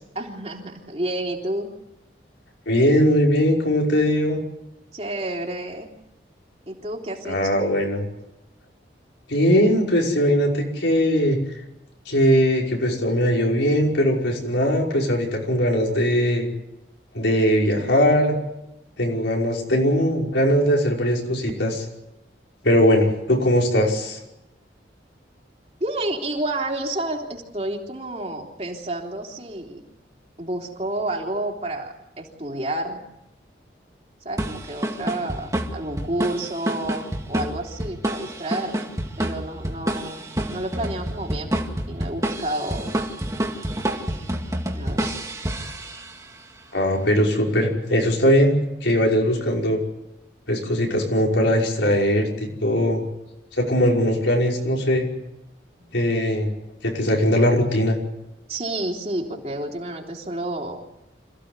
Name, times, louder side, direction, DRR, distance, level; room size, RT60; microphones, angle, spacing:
voice 1, 0.2-1.7 4.9-5.9 6.7-7.6 25.8-29.8 30.4-33.0 34.3-38.9 39.2-40.2 40.5-41.5 41.9-42.9 44.7-45.1 58.5-60.8, right 1 dB, 35° right, 1 dB, 3.5 m, -30 dB
voice 2, 2.7-4.4 7.3-8.1 9.3-11.4 12.1-16.5 17.1-18.3 19.0-21.8 22.6-24.2 46.7-48.5 48.8-49.8 50.5-53.0 53.6-55.1 55.9-56.5 56.8-58.0, equal, 85° left, -1 dB, 5.6 m, -20 dB
sound 1, 34.4-46.3, right 1 dB, 20° right, 2.1 m, -29 dB
27.0 x 16.0 x 9.7 m, 0.91 s
head